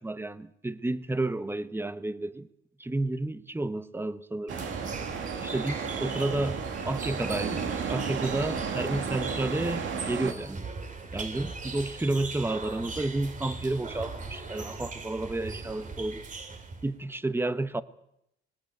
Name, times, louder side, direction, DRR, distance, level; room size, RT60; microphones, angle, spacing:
voice 1, 0.0-2.5 2.8-4.6 5.1-7.6 7.9-10.6 11.1-16.2 16.8-17.8, right 2 dB, 10° right, 1.1 m, -31 dB
sound 1, 4.5-16.9, right 3 dB, 40° right, 3.0 m, -39 dB
sound 2, 4.5-10.3, right 6 dB, 75° right, 2.8 m, -33 dB
20.0 x 19.5 x 8.1 m
cardioid pair, 90°, 20 cm